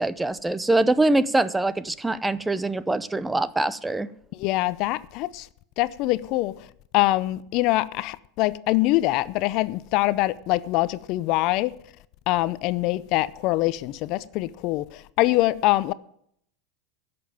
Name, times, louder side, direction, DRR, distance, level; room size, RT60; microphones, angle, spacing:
voice 1, 0.0-4.1, right 2 dB, 10° right, 0.6 m, -23 dB
voice 2, 4.3-5.5 5.8-6.7 6.9-11.7 12.3-15.9, left 18 dB, 55° left, 0.5 m, -24 dB
11.0 x 6.9 x 9.1 m
hypercardioid pair, 105°, 0 cm